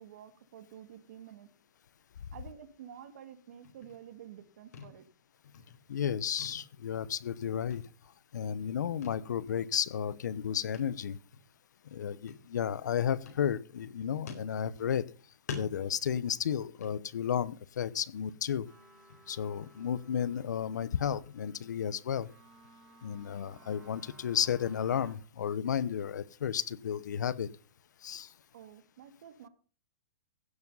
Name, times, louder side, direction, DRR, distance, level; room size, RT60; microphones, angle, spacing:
voice 1, 0.0-1.5 2.3-5.1 28.5-29.5, right 9 dB, 50° right, 1.8 m, -50 dB
sound 1, 3.6-4.5 4.7-5.2 5.4-6.1 6.4-7.4 7.7-8.4 9.0-9.3 9.6-9.7 10.7-11.0 11.3-11.5 12.3-12.9 13.3-13.9 14.3-15.1 15.5-17.5 17.9-18.2 18.5-18.6 19.1-19.8 20.2-22.7, left 5 dB, 65° left, 4.4 m, -48 dB
voice 2, 5.9-7.8 8.3-11.2 11.9-15.0 15.5-18.7 19.3-22.3 23.0-27.5 28.0-28.3, left 8 dB, 85° left, 0.9 m, -33 dB
sound 2, 18.7-25.2, right 2 dB, 5° right, 3.5 m, -59 dB
16.0 x 7.3 x 5.5 m
hypercardioid pair, 180°, 9 cm